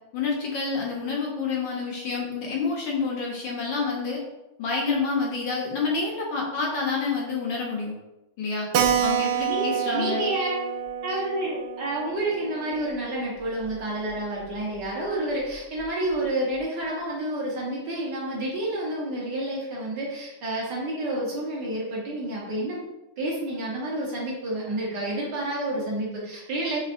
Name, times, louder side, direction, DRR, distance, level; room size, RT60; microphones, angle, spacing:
voice 1, 0.1-4.2 4.6-8.0 8.4-8.7 9.0-10.3, left 4 dB, 65° left, -2 dB, 1.3 m, -28 dB
Keyboard (musical), 8.7-13.8 14.1-14.2 14.4-14.5 14.8-14.9 15.5-15.8, right 8 dB, 85° right, 0.9 m, -28 dB
voice 2, 9.5-10.7 11.0-22.8 23.2-26.8, right 1 dB, 60° right, -4 dB, 1.5 m, -29 dB
6.0 x 3.1 x 2.5 m, 0.97 s
omnidirectional pair, 2.4 m